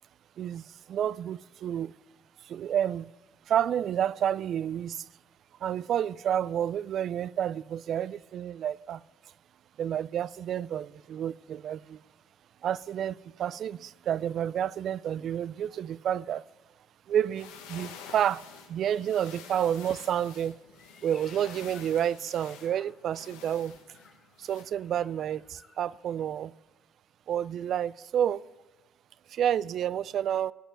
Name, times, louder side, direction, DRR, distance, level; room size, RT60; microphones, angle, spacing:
voice 1, 0.4-1.9 2.4-3.1 3.5-5.1 5.6-9.0 9.8-12.0 12.6-16.4 17.1-18.4 18.7-20.5 21.0-23.7 24.4-26.5 27.3-28.4 29.3-30.5, right 10 dB, 60° right, 0.3 m, -30 dB
sound 1, 17.2-24.6, left 7 dB, 90° left, 1.3 m, -49 dB
Meow, 20.7-23.3 23.8-25.9, left 5 dB, 40° left, 1.2 m, -58 dB
15.0 x 5.3 x 8.8 m
supercardioid pair, 75°, 0 cm